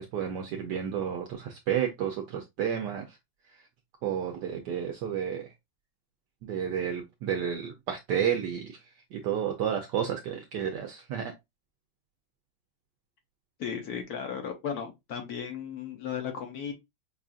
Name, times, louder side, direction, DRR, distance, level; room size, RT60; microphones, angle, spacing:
voice 1, 0.0-3.2 4.0-5.5 6.4-8.8 9.1-11.3, right 8 dB, 75° right, 1.1 m, -31 dB
voice 2, 13.6-16.7, left 7 dB, 60° left, 1.1 m, -35 dB
5.5 x 2.4 x 2.3 m
omnidirectional pair, 2.2 m